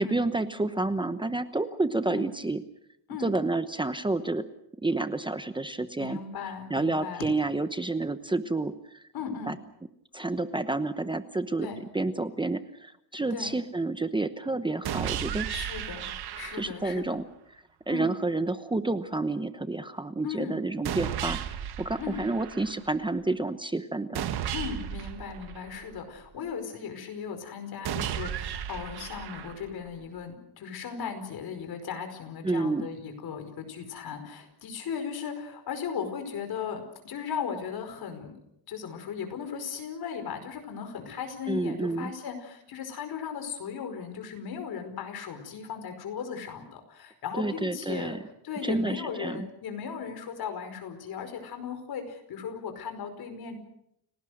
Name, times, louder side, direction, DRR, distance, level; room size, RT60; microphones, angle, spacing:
voice 1, 0.0-2.6 3.2-4.4 4.8-6.2 6.7-9.0 9.5-9.6 10.1-11.7 11.9-15.5 16.6-17.2 17.9-21.4 21.8-24.3 32.4-32.9 41.5-42.1 47.4-48.2 48.6-49.5, right 2 dB, 10° right, 10 dB, 1.0 m, -29 dB
voice 2, 6.0-7.3 9.1-9.5 11.6-11.8 13.3-13.5 15.5-16.1 16.4-17.2 17.9-18.1 20.2-20.5 22.0-22.2 24.5-38.4 38.7-48.2 48.4-53.6, left 7 dB, 70° left, 8 dB, 5.1 m, -37 dB
sound 1, 14.8-16.9 20.8-22.9 24.1-26.2 27.8-29.9, right 10 dB, 75° right, 1.8 m, -34 dB
30.0 x 18.0 x 6.5 m, 0.77 s
cardioid pair, 135°, 39 cm